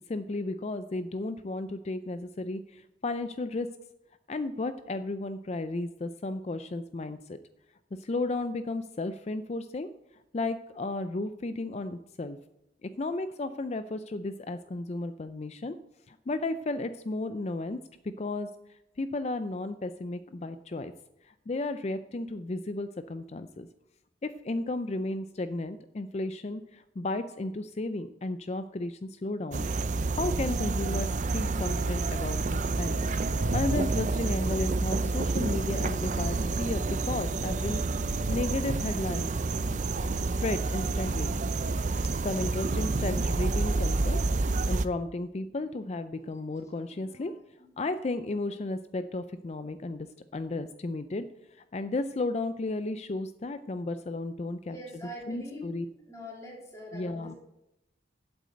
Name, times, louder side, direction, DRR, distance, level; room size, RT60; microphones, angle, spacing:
voice 1, 0.1-3.7 4.3-7.4 7.9-9.9 10.3-12.4 12.8-15.8 16.1-17.8 18.2-18.5 19.0-20.9 21.2-23.7 24.2-29.7 30.1-33.0 33.5-37.8 38.1-39.3 40.2-41.4 42.2-47.3 47.8-50.1 50.3-51.3 51.7-54.8 55.3-55.9 56.9-57.3, left 2 dB, 35° left, 11 dB, 0.4 m, -34 dB
sound 1, 29.5-44.9, right 3 dB, 40° right, 0.5 m, -29 dB
voice 2, 41.9-42.3 46.9-47.3 47.6-47.8 54.6-55.7 56.1-57.4, equal, 15° left, -4 dB, 3.4 m, -44 dB
8.2 x 7.9 x 7.8 m, 0.90 s
head